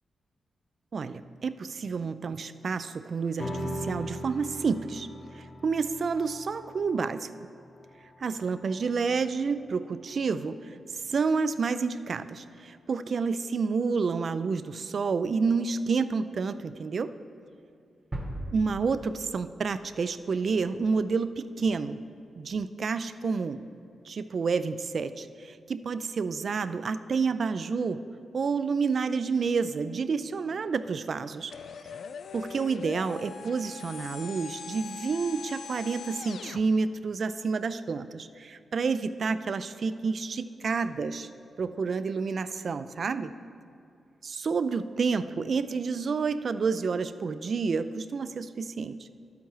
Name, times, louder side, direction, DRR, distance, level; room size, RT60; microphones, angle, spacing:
voice 1, 0.9-5.1 5.3-7.3 8.2-17.1 18.5-22.0 22.4-23.6 24.1-28.0 28.3-31.5 32.3-41.3 41.6-43.3 44.2-49.1, right 5 dB, 55° right, 13 dB, 0.3 m, -29 dB
sound 1, 3.4-10.1, equal, 40° left, 0.9 m, -40 dB
sound 2, 18.1-20.0, right 1 dB, 25° right, 1.0 m, -38 dB
sound 3, 31.5-36.6, left 6 dB, 70° left, 0.3 m, -41 dB
12.0 x 8.2 x 3.1 m, 2.5 s
wide cardioid pair, 110°, 0 cm